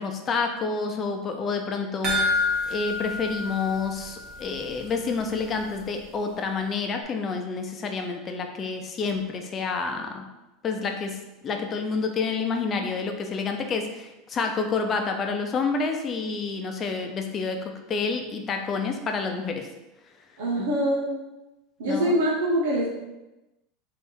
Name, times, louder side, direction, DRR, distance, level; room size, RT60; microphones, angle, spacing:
voice 1, 0.0-2.3 2.7-10.2 10.6-19.7 20.6-20.7 21.8-22.2, left 4 dB, 35° left, 4 dB, 0.6 m, -29 dB
sound 1, 2.0-4.6 4.9-5.0 5.4-5.5, left 2 dB, 50° right, 1.5 m, -28 dB
voice 2, 20.4-21.2 21.8-22.9, right 1 dB, 85° right, -4 dB, 1.1 m, -24 dB
3.5 x 2.7 x 4.4 m, 1.0 s
supercardioid pair, 110°, 0 cm